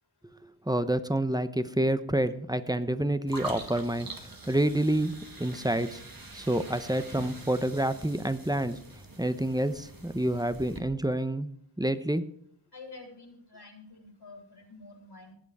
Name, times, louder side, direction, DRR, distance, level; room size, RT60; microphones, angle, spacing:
voice 1, 0.7-4.1 4.5-6.0 6.3-8.8 9.2-11.5 11.8-12.3, right 1 dB, 10° right, 12 dB, 0.9 m, -28 dB
sound 1, 3.3-10.8, right 2 dB, 50° right, 2.1 m, -44 dB
voice 2, 12.7-15.3, left 3 dB, 70° left, 3 dB, 3.2 m, -48 dB
18.0 x 6.8 x 4.9 m, 0.66 s
wide cardioid pair, 40°, 43 cm